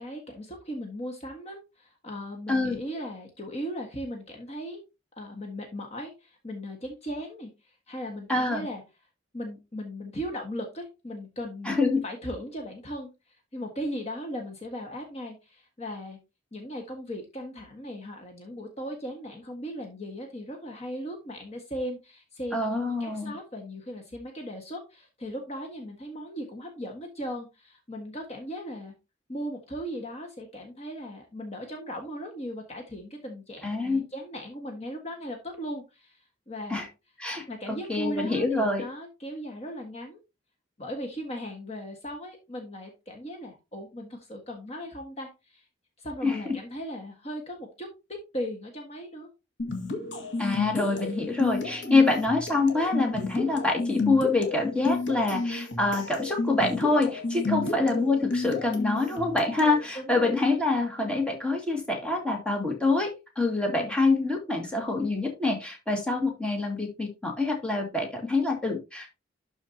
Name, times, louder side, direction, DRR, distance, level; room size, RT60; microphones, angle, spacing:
voice 1, 0.0-4.8 5.2-8.8 9.3-11.7 12.0-16.2 16.5-28.9 29.3-36.8 37.5-40.2 40.8-45.6 46.0-49.3 57.5-57.9 59.9-60.5 63.8-64.0, equal, 35° left, 3 dB, 1.5 m, -38 dB
voice 2, 8.3-8.6 11.7-12.0 22.5-23.3 33.6-34.0 36.7-36.9 37.2-38.8 46.2-46.4 50.4-69.1, left 3 dB, 5° left, 0 dB, 2.2 m, -26 dB
sound 1, 49.6-59.8, left 3 dB, 75° left, 1.9 m, -32 dB
12.0 x 4.6 x 2.8 m, 0.26 s
head